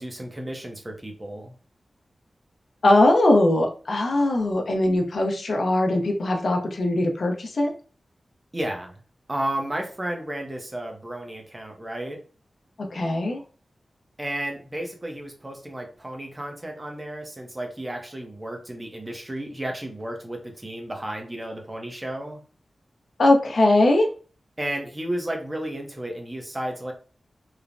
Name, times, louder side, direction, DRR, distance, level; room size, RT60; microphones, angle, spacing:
voice 1, 0.0-1.5 8.5-9.0 9.3-12.2 14.2-22.4 24.6-26.9, right 1 dB, 20° right, 2 dB, 0.6 m, -33 dB
voice 2, 2.8-7.7 12.9-13.4 23.2-24.1, left 1 dB, 65° left, 2 dB, 0.6 m, -20 dB
3.1 x 2.1 x 2.5 m, 0.38 s
wide cardioid pair, 125°, 0 cm